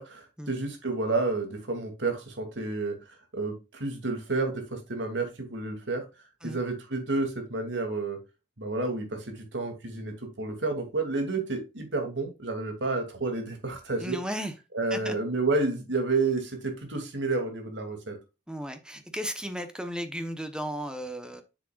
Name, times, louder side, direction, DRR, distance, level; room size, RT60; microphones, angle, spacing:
voice 1, 0.0-3.0 3.3-6.0 6.4-8.2 8.6-14.2 14.7-18.2, right 3 dB, 85° right, 4 dB, 2.6 m, -30 dB
voice 2, 14.0-14.5 14.9-15.2 18.5-21.4, equal, 5° right, 8 dB, 0.9 m, -35 dB
7.7 x 7.3 x 2.4 m, 0.28 s
head